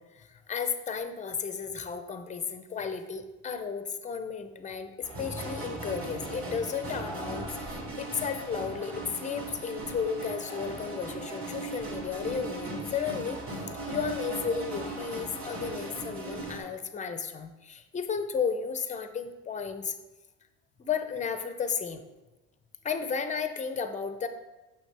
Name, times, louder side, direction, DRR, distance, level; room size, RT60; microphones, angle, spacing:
voice 1, 0.0-13.4 13.9-19.9 20.8-22.0 22.8-24.3, left 6 dB, 20° left, 8 dB, 0.5 m, -33 dB
sound 1, 5.0-16.6, right 2 dB, 35° right, 2.0 m, -38 dB
6.4 x 5.9 x 3.3 m, 1.1 s
cardioid pair, 115°, 37 cm